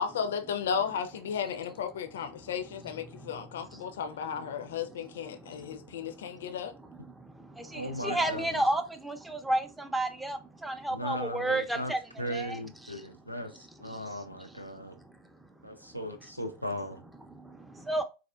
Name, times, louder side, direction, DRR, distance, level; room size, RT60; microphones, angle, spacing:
voice 1, 0.0-6.7, left 7 dB, 60° left, 0.4 m, -34 dB
voice 2, 3.0-3.4 3.7-3.9 5.3-6.5 7.2-13.1 13.5-14.8 17.2-18.0, right 1 dB, 5° right, 0.5 m, -34 dB
voice 3, 7.7-8.5 10.9-11.9 12.2-13.5 13.8-14.9 15.6-17.0, equal, 90° right, 0.6 m, -37 dB
4.1 x 2.4 x 2.3 m
figure-of-eight pair, 90°, 0 cm